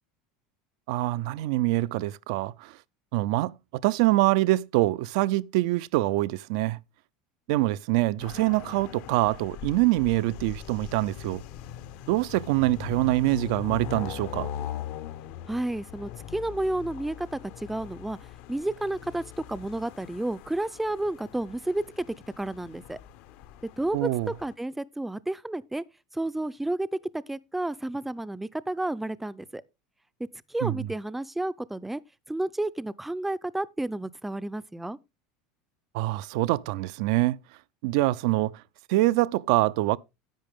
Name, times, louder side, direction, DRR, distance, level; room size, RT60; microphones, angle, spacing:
voice 1, 0.9-2.8 3.1-3.5 3.8-6.8 7.5-11.4 12.1-14.5 23.9-24.3 30.6-30.9 35.9-37.4 37.8-38.6 38.9-40.0, right 17 dB, 70° right, 0.4 m, -25 dB
sound 1, 8.2-24.5, left 10 dB, 60° left, 0.9 m, -41 dB
voice 2, 15.5-18.2 18.5-19.2 19.5-23.0 23.8-24.1 24.4-25.8 26.1-26.9 27.1-29.6 30.5-32.0 32.3-35.0, right 1 dB, 5° right, 0.5 m, -31 dB
10.5 x 8.3 x 3.5 m
supercardioid pair, 115°, 3 cm